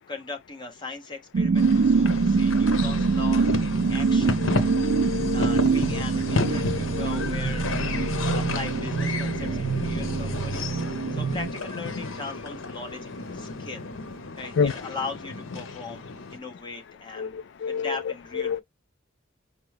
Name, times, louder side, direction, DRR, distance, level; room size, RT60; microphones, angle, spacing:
voice 1, 0.1-4.4 5.3-10.7 11.1-13.8 14.4-17.4 17.7-18.6, left 3 dB, 25° left, 1.1 m, -39 dB
sound 1, 1.3-11.5, right 4 dB, 50° right, 0.3 m, -24 dB
sound 2, 1.5-16.4, left 3 dB, 85° left, 0.9 m, -32 dB
voice 2, 4.1-5.6 5.9-6.0 6.4-7.1 8.0-8.4 14.6-14.7 17.2-18.0 18.3-18.6, left 6 dB, 60° left, 0.3 m, -30 dB
5.0 x 2.2 x 4.7 m
head